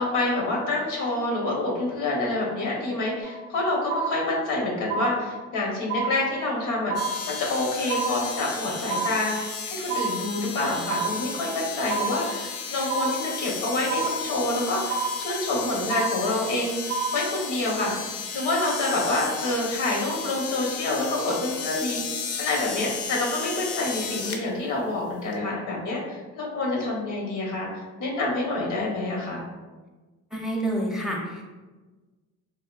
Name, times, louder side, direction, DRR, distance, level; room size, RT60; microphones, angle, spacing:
voice 1, 0.0-17.9 18.3-27.7 28.0-29.4, left 2 dB, 90° left, -3 dB, 0.9 m, -27 dB
sound 1, 3.3-3.6 3.9-4.6 4.9-5.6 5.9-6.6 6.9-7.6 7.9-8.6 8.9-9.6 9.9-10.6 10.9-11.6 11.9-12.6 12.9-13.6 13.9-14.6 14.9-15.6 15.9-16.6 16.9-17.6, right 4 dB, 55° right, 0.5 m, -30 dB
sound 2, 7.0-24.4 25.3-25.4, left 5 dB, 55° left, 0.5 m, -34 dB
voice 2, 30.3-31.4, right 1 dB, ahead, -1 dB, 0.5 m, -28 dB
3.5 x 2.1 x 2.3 m, 1.3 s
cardioid pair, 90°, 30 cm